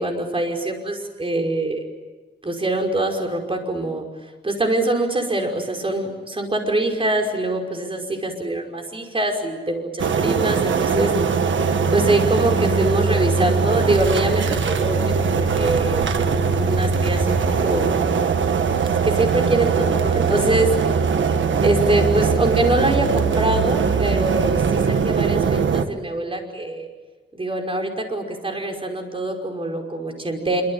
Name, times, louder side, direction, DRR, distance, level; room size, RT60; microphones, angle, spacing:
voice 1, 0.0-1.8 2.4-4.0 4.4-11.1 11.9-17.9 19.0-20.7 21.6-26.9 27.3-30.6, right 2 dB, 30° right, 3 dB, 5.5 m, -24 dB
sound 1, 10.0-25.8, right 5 dB, 80° right, 1.6 m, -21 dB
26.5 x 24.5 x 8.9 m, 1.2 s
wide cardioid pair, 105°, 19 cm